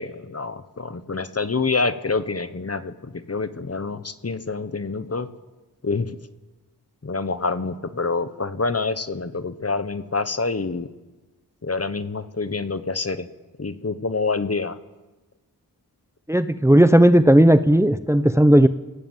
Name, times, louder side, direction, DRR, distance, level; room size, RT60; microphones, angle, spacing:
voice 1, 0.0-5.3 5.8-6.2 7.0-10.9 11.6-13.3 13.6-14.8, left 4 dB, 40° left, 12 dB, 1.3 m, -27 dB
voice 2, 16.3-18.7, right 1 dB, 5° right, 12 dB, 0.8 m, -15 dB
27.5 x 17.0 x 7.5 m, 1.2 s
wide cardioid pair, 65°, 38 cm